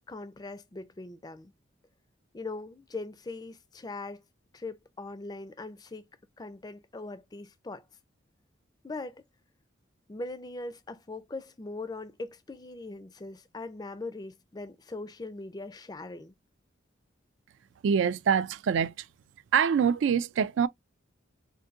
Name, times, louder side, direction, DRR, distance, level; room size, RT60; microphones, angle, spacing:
voice 1, 0.1-1.5 2.3-4.2 4.5-6.0 6.4-7.9 8.8-9.2 10.1-16.3, left 2 dB, 20° left, 0.3 m, -40 dB
voice 2, 17.8-19.1 19.5-20.7, right 7 dB, 75° right, 0.3 m, -25 dB
3.8 x 2.6 x 2.4 m
head